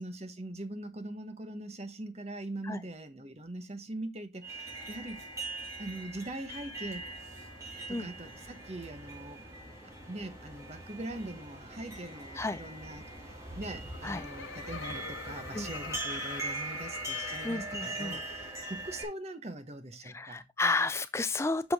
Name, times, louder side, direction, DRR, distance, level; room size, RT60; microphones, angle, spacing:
voice 1, 0.0-5.2 5.8-7.0 7.9-9.4 9.8-20.4, right 1 dB, 35° right, 1.2 m, -42 dB
sound 1, 4.4-19.0, right 2 dB, 15° right, 2.8 m, -41 dB
Laughter, 13.7-18.9, left 6 dB, 85° left, 1.0 m, -44 dB
voice 2, 17.4-18.2 20.1-21.7, left 3 dB, 15° left, 0.4 m, -31 dB
8.2 x 6.2 x 3.5 m
head